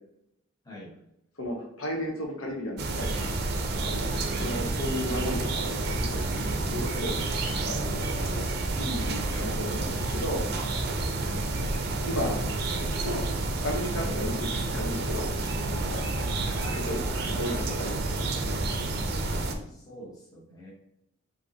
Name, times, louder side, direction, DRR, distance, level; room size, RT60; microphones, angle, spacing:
voice 1, 0.6-1.0 4.1-4.3 11.2-11.5 19.3-20.7, left 1 dB, 15° left, -4 dB, 0.9 m, -46 dB
voice 2, 1.4-3.1 3.7-4.1 4.4-10.4 11.7-12.4 12.9-13.2 13.6-15.3 15.6-16.0 16.6-18.6, left 1 dB, 85° left, 0 dB, 1.0 m, -34 dB
sound 1, 2.8-19.6, right 2 dB, 50° right, 0.5 m, -29 dB
5.0 x 2.9 x 2.8 m, 0.80 s
head